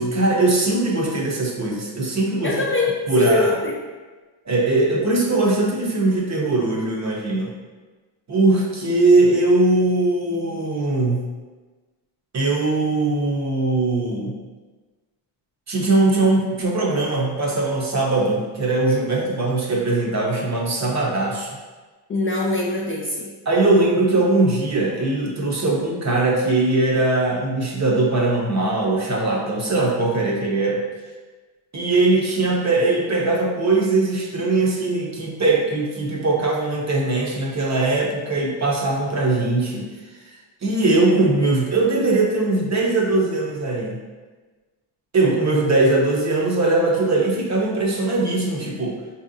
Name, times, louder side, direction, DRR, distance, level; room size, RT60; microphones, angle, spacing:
voice 1, 0.0-2.5 3.1-3.6 4.5-7.5 8.3-11.3 12.3-14.3 15.7-21.5 23.5-30.8 31.7-39.9 40.6-44.0 45.1-49.0, right 2 dB, 35° right, -2 dB, 0.7 m, -20 dB
voice 2, 2.4-2.9 3.2-3.8 22.1-23.3, left 3 dB, 30° left, -4 dB, 0.4 m, -22 dB
4.4 x 2.8 x 2.6 m, 1.3 s
cardioid pair, 115°, 49 cm